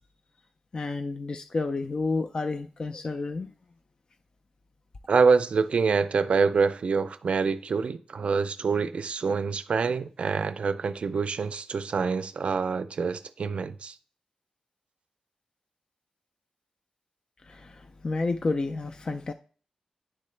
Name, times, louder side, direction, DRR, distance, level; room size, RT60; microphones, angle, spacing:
voice 1, 0.7-3.5 17.5-19.3, left 3 dB, 40° left, 0.4 m, -30 dB
voice 2, 5.1-13.9, right 5 dB, 65° right, 0.4 m, -26 dB
9.8 x 3.8 x 3.2 m
wide cardioid pair, 120°, 2 cm